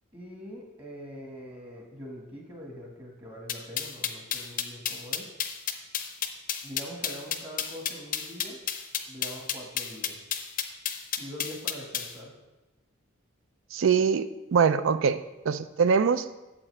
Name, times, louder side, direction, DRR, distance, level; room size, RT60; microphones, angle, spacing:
voice 1, 0.1-5.2 6.6-8.6 9.1-10.2 11.2-12.3, equal, 25° right, -1 dB, 1.5 m, -43 dB
sound 1, 3.5-12.1, left 9 dB, 40° left, 0.6 m, -31 dB
voice 2, 13.7-14.3 14.5-15.2 15.5-16.2, right 6 dB, 65° right, 13 dB, 0.4 m, -22 dB
8.6 x 7.3 x 3.3 m, 1.0 s
head